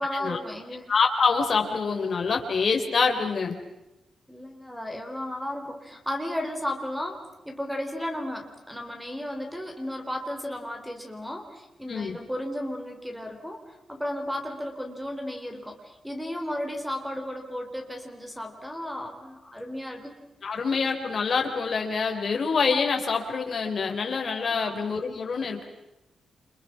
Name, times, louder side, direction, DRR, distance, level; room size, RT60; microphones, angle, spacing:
voice 1, 0.0-0.9 4.3-7.2 7.5-20.1 24.5-24.9, left 1 dB, ahead, 4 dB, 4.1 m, -34 dB
voice 2, 0.9-3.6 11.9-12.2 20.4-25.6, left 5 dB, 40° left, 3 dB, 4.5 m, -26 dB
29.0 x 29.0 x 6.2 m, 0.93 s
wide cardioid pair, 160°, 0 cm